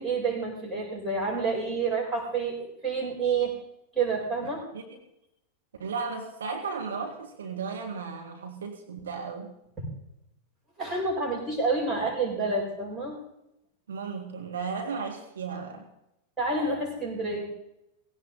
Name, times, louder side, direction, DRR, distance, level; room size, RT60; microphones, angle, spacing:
voice 1, 0.0-3.6 3.9-4.7 9.8-9.9 10.8-13.2 16.4-17.5, right 4 dB, 15° right, -3 dB, 7.7 m, -29 dB
voice 2, 5.8-9.5 13.9-15.9, right 5 dB, 70° right, 2 dB, 2.1 m, -35 dB
18.0 x 17.0 x 4.1 m, 0.85 s
figure-of-eight pair, 90°, 0 cm